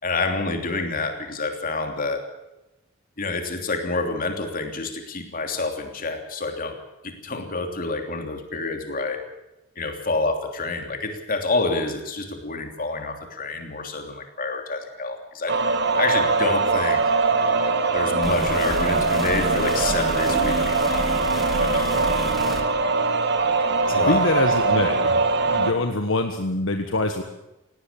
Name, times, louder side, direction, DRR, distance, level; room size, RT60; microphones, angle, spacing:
voice 1, 0.0-2.3 3.2-6.8 7.0-9.2 9.8-15.6 15.9-17.1 17.9-22.1 23.9-24.3, left 3 dB, 45° left, 5 dB, 3.1 m, -28 dB
sound 1, 15.5-25.7, right 3 dB, 55° right, 1.9 m, -22 dB
sound 2, 18.2-22.6, equal, ahead, 2.9 m, -31 dB
voice 2, 23.9-25.2 25.5-27.2, left 2 dB, 65° left, 6 dB, 1.4 m, -24 dB
18.0 x 17.5 x 8.6 m, 0.95 s
head